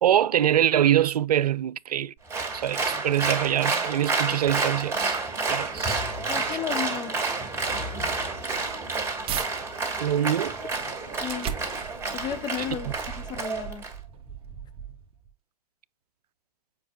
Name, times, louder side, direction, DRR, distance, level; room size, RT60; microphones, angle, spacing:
voice 1, 0.0-5.2 5.5-6.0 6.5-6.6 10.0-10.6, right 11 dB, 80° right, 0.5 m, -24 dB
Applause, 2.3-13.9, right 3 dB, 15° right, 2.6 m, -29 dB
voice 2, 6.3-7.2 11.2-11.5 12.1-13.8, left 9 dB, 20° left, 0.5 m, -33 dB
sound 1, 8.4-9.5 10.0-15.3, right 8 dB, 30° right, 1.3 m, -38 dB
7.8 x 5.3 x 2.4 m
hypercardioid pair, 120°, 20 cm